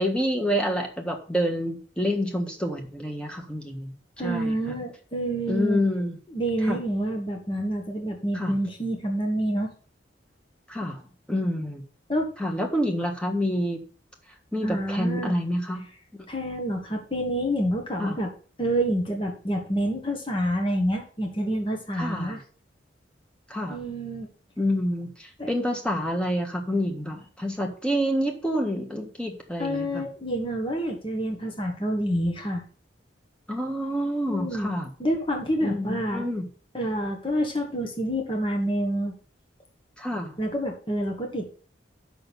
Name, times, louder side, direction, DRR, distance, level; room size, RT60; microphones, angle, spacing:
voice 1, 0.0-3.9 4.2-4.7 5.5-6.2 6.6-6.8 8.3-8.5 10.7-11.0 11.3-11.8 12.4-13.8 14.5-15.8 18.0-18.2 22.0-22.4 23.5-23.8 24.6-30.1 33.5-34.9 35.6-36.4 40.0-40.3, equal, 5° left, 2 dB, 1.5 m, -28 dB
voice 2, 4.2-5.8 6.3-9.7 12.1-12.3 14.6-15.3 16.3-18.3 18.6-22.4 23.7-24.3 25.4-25.5 29.6-32.6 34.3-34.7 35.0-36.2 36.7-39.1 40.4-41.4, equal, 25° left, 2 dB, 1.6 m, -28 dB
6.5 x 6.2 x 6.9 m, 0.41 s
head